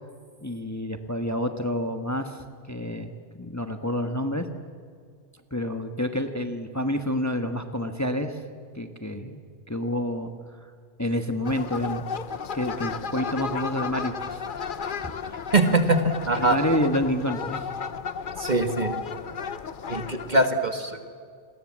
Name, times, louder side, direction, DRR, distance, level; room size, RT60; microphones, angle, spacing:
voice 1, 0.4-4.5 5.5-8.4 8.7-9.4 9.7-10.3 11.0-12.0 12.5-14.4 15.0-15.4 16.4-17.7, left 1 dB, 15° left, 7 dB, 1.2 m, -28 dB
sound 1, 11.4-20.5, left 6 dB, 50° left, 1.0 m, -34 dB
voice 2, 15.5-16.6 18.4-18.9 19.9-21.0, right 2 dB, 40° right, 7 dB, 1.8 m, -22 dB
29.0 x 21.5 x 7.5 m, 2.1 s
omnidirectional pair, 1.2 m